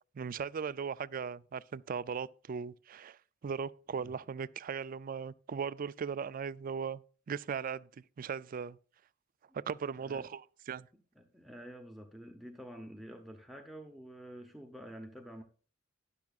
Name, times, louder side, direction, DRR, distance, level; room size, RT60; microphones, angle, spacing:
voice 1, 0.1-7.9 8.2-8.8 9.5-10.4 10.7-10.9, right 6 dB, 45° right, 0.4 m, -38 dB
voice 2, 10.0-10.3 10.9-15.4, equal, ahead, 0.8 m, -49 dB
12.0 x 10.5 x 2.4 m
head